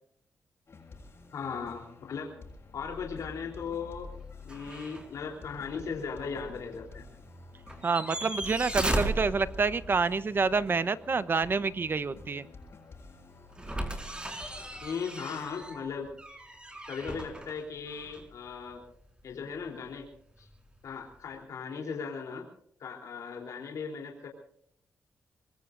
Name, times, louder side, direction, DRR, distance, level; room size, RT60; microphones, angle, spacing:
sound 1, 0.7-14.9, left 3 dB, 50° left, 6.5 m, -49 dB
voice 1, 1.3-2.3 2.7-4.1 4.4-7.0 14.8-16.1 16.9-18.8 19.2-20.1 20.4-20.5 20.8-22.5 22.8-24.3, left 5 dB, 75° left, 1 dB, 3.5 m, -37 dB
sound 2, 4.5-5.1 5.5-5.6 7.7-10.0 13.6-18.4 20.5-20.6, right 1 dB, 15° right, 4.8 m, -36 dB
voice 2, 7.8-12.5, right 4 dB, 40° right, 15 dB, 0.9 m, -28 dB
24.5 x 21.5 x 2.6 m, 0.68 s
cardioid pair, 80°, 5 cm